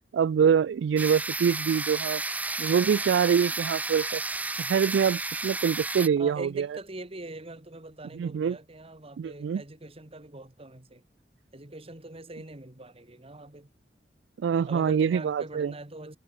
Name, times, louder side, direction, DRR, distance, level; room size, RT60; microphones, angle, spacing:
voice 1, 0.1-2.2 2.6-4.2 4.6-6.7 8.1-8.6 9.2-9.6 14.4-15.7, right 7 dB, 90° right, 0.3 m, -25 dB
sound 1, 1.0-6.1, right 3 dB, 10° right, 0.4 m, -32 dB
voice 2, 6.2-11.0 11.5-13.7 14.7-16.2, right 2 dB, 35° right, 2.2 m, -43 dB
head